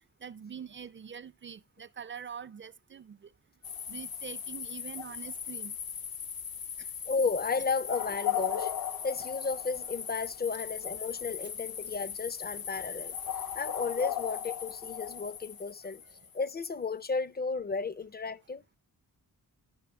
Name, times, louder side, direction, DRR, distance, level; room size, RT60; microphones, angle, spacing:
voice 1, 0.2-3.3 3.9-5.8, right 7 dB, 30° right, 0.4 m, -44 dB
sound 1, 3.6-16.4, left 9 dB, 65° left, 0.7 m, -37 dB
voice 2, 7.1-8.7 9.0-13.2 13.5-16.0 16.3-18.6, left 4 dB, 25° left, 0.5 m, -33 dB
12.0 x 5.5 x 3.3 m
cardioid pair, 70°, 38 cm